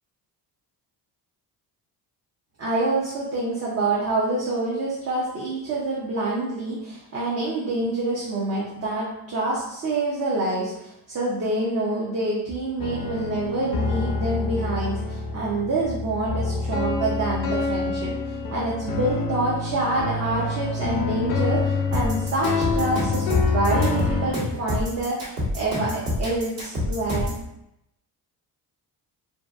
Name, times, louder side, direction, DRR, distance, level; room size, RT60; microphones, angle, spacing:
voice 1, 2.6-27.3, right 2 dB, 35° right, -5 dB, 0.6 m, -27 dB
sound 1, 12.8-24.3, left 3 dB, 70° left, 0.6 m, -26 dB
sound 2, 21.9-27.4, left 1 dB, 50° right, 1.3 m, -27 dB
2.6 x 2.4 x 2.3 m, 0.84 s
cardioid pair, 100°, 41 cm